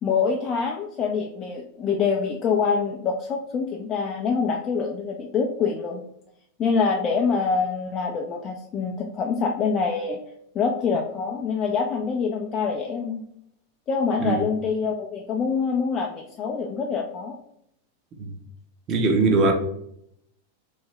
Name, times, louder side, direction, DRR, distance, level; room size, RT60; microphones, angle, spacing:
voice 1, 0.0-6.0 6.6-10.2 10.5-13.2 13.9-17.4 19.4-19.5, left 5 dB, 30° left, 0.3 m, -25 dB
voice 2, 18.9-19.5, right 3 dB, 30° right, 0.6 m, -21 dB
3.1 x 2.6 x 2.9 m
figure-of-eight pair, 90°, 0 cm